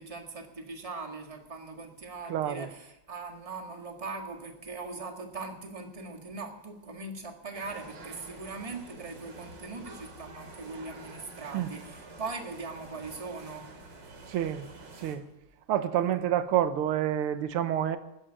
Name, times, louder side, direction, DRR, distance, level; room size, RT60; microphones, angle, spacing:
voice 1, 0.0-13.7 16.0-16.1, right 3 dB, 15° right, 1.6 m, -40 dB
voice 2, 2.3-2.7 11.5-11.7 14.3-14.7 15.0-15.2 15.7-18.0, right 11 dB, 85° right, 1.8 m, -28 dB
sound 1, 7.5-15.2, right 2 dB, 55° right, 3.0 m, -48 dB
13.5 x 10.0 x 8.9 m
omnidirectional pair, 2.4 m